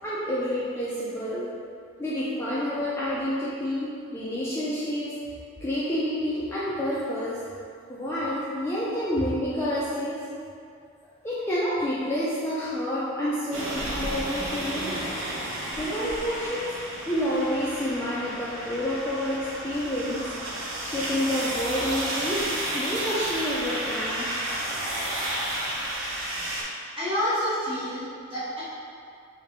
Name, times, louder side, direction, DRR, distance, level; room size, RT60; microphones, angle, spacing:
voice 1, 0.0-1.5 2.0-5.1 5.6-7.4 7.9-10.3 11.2-15.0 15.8-16.7 17.1-20.3 20.8-22.5 22.7-24.3, equal, 10° left, -9 dB, 0.3 m, -29 dB
sound 1, 13.5-26.6, right 1 dB, 70° right, 0.6 m, -32 dB
voice 2, 27.0-28.6, equal, 25° right, -13 dB, 0.9 m, -28 dB
3.4 x 2.7 x 3.5 m, 2.3 s
head